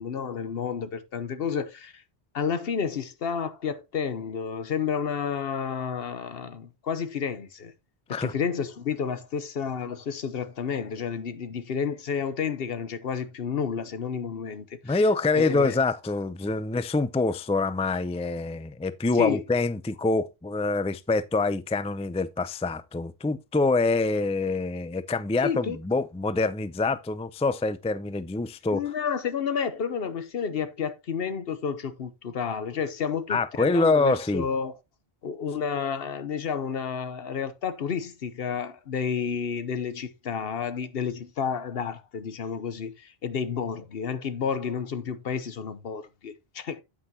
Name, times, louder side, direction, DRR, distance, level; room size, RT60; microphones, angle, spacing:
voice 1, 0.0-2.0 2.3-7.7 8.1-15.0 15.3-15.8 19.1-19.4 25.4-25.8 28.7-34.7 35.2-46.8, left 6 dB, 70° left, 1.1 m, -31 dB
voice 2, 14.8-28.8 33.3-34.4, left 3 dB, 10° left, 0.3 m, -25 dB
9.5 x 8.6 x 2.8 m
omnidirectional pair, 1.0 m